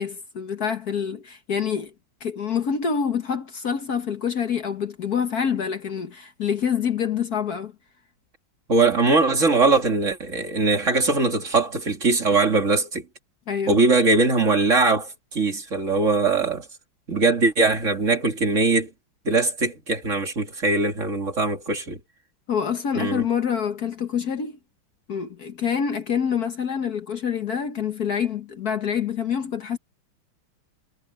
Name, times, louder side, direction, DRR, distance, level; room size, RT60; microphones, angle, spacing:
voice 1, 0.0-1.9 2.2-7.7 13.5-13.8 22.5-24.6 25.1-29.8, left 7 dB, 55° left, 1.7 m, -26 dB
voice 2, 8.7-13.0 13.7-16.6 17.1-18.9 19.2-22.0 22.9-23.2, right 3 dB, 40° right, 2.6 m, -21 dB
omnidirectional pair, 2.2 m